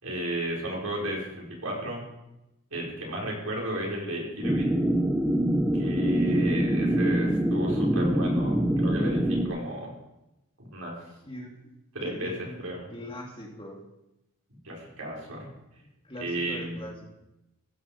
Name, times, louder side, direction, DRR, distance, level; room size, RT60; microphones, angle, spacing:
voice 1, 0.0-2.0 2.7-4.7 5.7-9.9 10.6-10.9 11.9-12.3 12.6-12.9 14.6-15.5 16.2-16.8, right 1 dB, 80° right, -2 dB, 5.2 m, -33 dB
sound 1, 4.4-9.5, right 1 dB, 5° right, 1.1 m, -24 dB
voice 2, 11.2-11.7 12.0-12.6 12.9-13.8 16.0-17.0, left 1 dB, 25° left, 0 dB, 2.6 m, -41 dB
15.5 x 8.3 x 7.2 m, 0.92 s
head